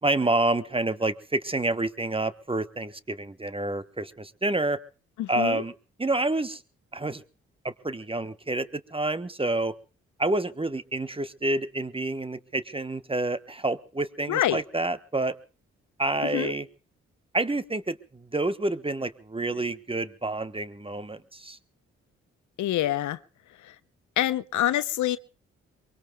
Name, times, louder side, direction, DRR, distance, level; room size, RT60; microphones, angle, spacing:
voice 1, 0.0-4.8 5.3-5.7 6.0-6.6 6.9-7.2 7.6-9.8 10.2-15.4 16.0-16.7 17.3-21.6, right 2 dB, 20° right, 13 dB, 1.2 m, -28 dB
voice 2, 5.2-5.6 14.3-14.6 16.3-16.5 22.6-23.2 24.2-25.2, left 13 dB, 75° left, 16 dB, 0.8 m, -26 dB
23.5 x 23.0 x 2.4 m, 0.35 s
hypercardioid pair, 45°, 30 cm